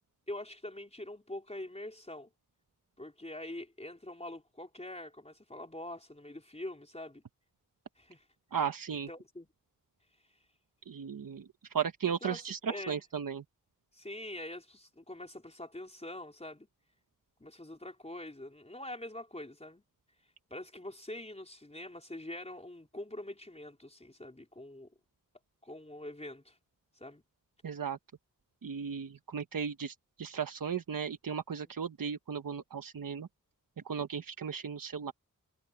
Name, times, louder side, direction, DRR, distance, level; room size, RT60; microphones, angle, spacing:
voice 1, 0.3-2.3 3.0-7.2 8.0-8.2 9.1-9.5 12.0-13.0 13.9-16.7 17.4-19.8 20.5-24.9 25.6-26.6 27.0-27.2, left 1 dB, 20° left, 4.3 m, -44 dB
voice 2, 8.5-9.1 10.9-11.5 11.7-13.4 27.6-28.0 28.6-33.3 33.8-35.1, right 7 dB, 85° right, 1.1 m, -36 dB
wide cardioid pair, 95°, 33 cm